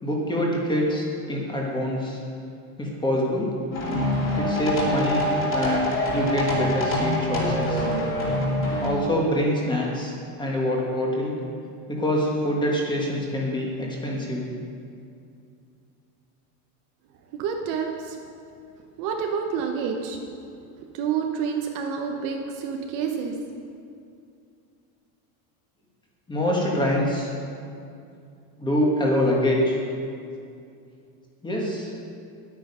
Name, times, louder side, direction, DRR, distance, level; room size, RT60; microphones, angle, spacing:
voice 1, 0.0-2.2 2.8-3.5 4.4-5.2 5.5-7.9 8.8-10.1 10.4-11.3 11.9-14.5 26.3-27.3 28.6-29.8 31.4-31.9, left 1 dB, 10° left, -2 dB, 1.5 m, -25 dB
sound 1, 3.7-8.9, left 1 dB, 25° left, 2.8 m, -25 dB
voice 2, 17.3-18.2 19.0-23.4, right 6 dB, 45° right, 3 dB, 0.9 m, -29 dB
10.5 x 9.4 x 5.5 m, 2.4 s
cardioid pair, 165°, 47 cm